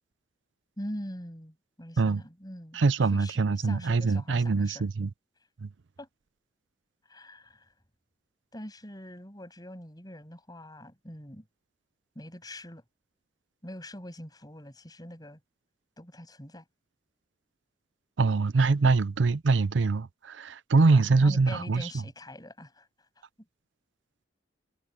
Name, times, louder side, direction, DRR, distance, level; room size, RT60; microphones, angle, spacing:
voice 1, 0.8-4.9 6.0-6.1 7.1-7.7 8.5-11.5 12.2-12.8 13.6-15.4 16.0-16.6 20.8-22.9, left 1 dB, 20° left, 7.4 m, -43 dB
voice 2, 2.7-5.1 5.6-5.7 18.2-21.9, right 4 dB, 90° right, 0.6 m, -24 dB
head